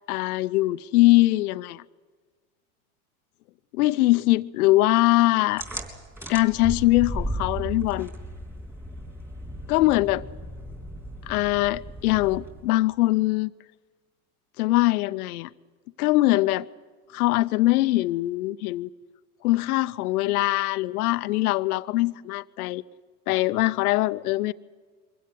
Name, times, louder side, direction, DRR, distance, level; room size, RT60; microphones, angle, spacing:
voice 1, 0.1-1.8 3.7-5.6 6.3-8.1 9.7-10.3 11.3-13.5 14.6-15.5 16.0-16.7 17.1-18.9 19.4-22.8 23.3-24.5, left 18 dB, 80° left, 0.7 m, -22 dB
sound 1, 5.6-12.7, right 1 dB, 5° right, 3.6 m, -36 dB
23.5 x 16.5 x 9.6 m
supercardioid pair, 110°, 44 cm